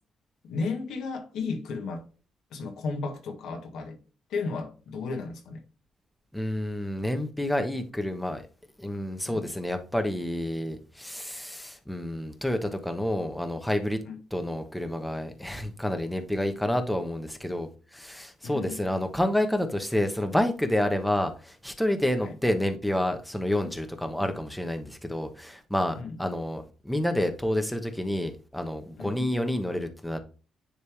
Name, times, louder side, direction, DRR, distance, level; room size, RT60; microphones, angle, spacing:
voice 1, 0.4-2.0 2.5-4.0 4.3-5.6 9.2-9.5 14.0-14.2 18.4-18.8 22.2-22.3 26.0-26.2 29.0-29.3, left 4 dB, 80° left, 1.7 m, -34 dB
voice 2, 6.3-8.4 8.8-14.0 14.3-30.2, left 1 dB, 5° left, 1.1 m, -29 dB
9.8 x 3.3 x 3.3 m
cardioid pair, 90°, 0 cm